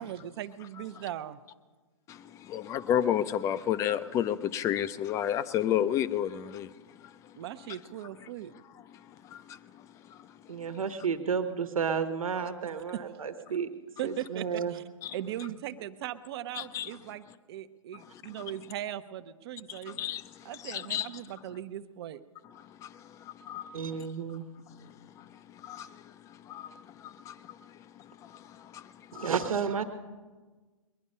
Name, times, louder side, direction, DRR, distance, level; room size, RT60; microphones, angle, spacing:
voice 1, 0.0-1.4 7.4-8.5 12.9-13.1 14.0-14.8 15.1-20.0 20.4-22.2, right 12 dB, 50° right, 0.8 m, -39 dB
voice 2, 2.1-7.4 8.9-10.8 15.0-15.1 16.5-16.9 17.9-18.3 19.7-21.1 22.6-24.1 24.7-29.3, left 10 dB, 20° left, 0.5 m, -33 dB
voice 3, 10.5-13.7 14.0-14.7 23.7-24.4 29.1-29.8, right 6 dB, 85° right, 1.3 m, -31 dB
20.5 x 11.0 x 5.5 m
hypercardioid pair, 135°, 17 cm